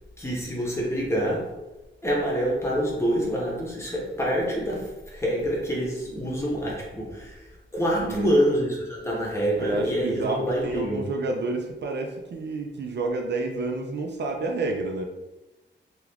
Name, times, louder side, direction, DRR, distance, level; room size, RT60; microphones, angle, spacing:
voice 1, 0.2-1.5 2.0-11.0, equal, 15° left, -4 dB, 0.8 m, -26 dB
voice 2, 9.6-15.0, right 3 dB, 65° right, 3 dB, 0.4 m, -29 dB
2.9 x 2.4 x 3.3 m, 1.1 s
wide cardioid pair, 160°, 20 cm